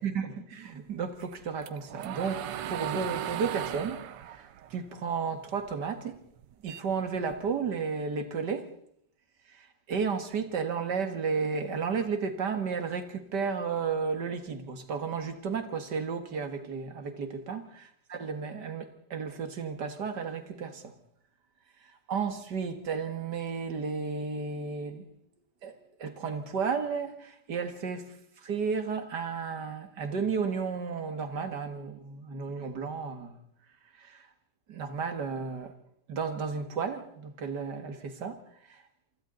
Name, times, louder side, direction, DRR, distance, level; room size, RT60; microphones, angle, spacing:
voice 1, 0.0-4.0 4.3-6.2 6.6-8.7 9.5-17.8 18.1-20.9 22.1-25.0 25.6-25.7 26.0-28.2 28.4-33.4 34.0-34.3 34.7-35.7 36.1-38.4 38.7-38.8, right 5 dB, 50° right, 2.3 m, -33 dB
sound 1, 1.2-5.7 6.1-7.7, right 11 dB, 85° right, 1.9 m, -37 dB
27.5 x 24.5 x 4.0 m
omnidirectional pair, 2.4 m